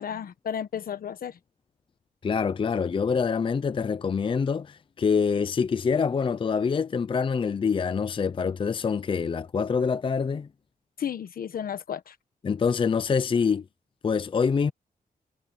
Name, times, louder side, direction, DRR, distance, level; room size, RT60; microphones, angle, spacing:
voice 1, 0.0-1.4 11.0-12.1, left 8 dB, 70° left, 1.2 m, -33 dB
voice 2, 2.2-10.5 12.4-13.6 14.0-14.7, left 5 dB, 35° left, 0.5 m, -25 dB
wide cardioid pair, 140°, 15 cm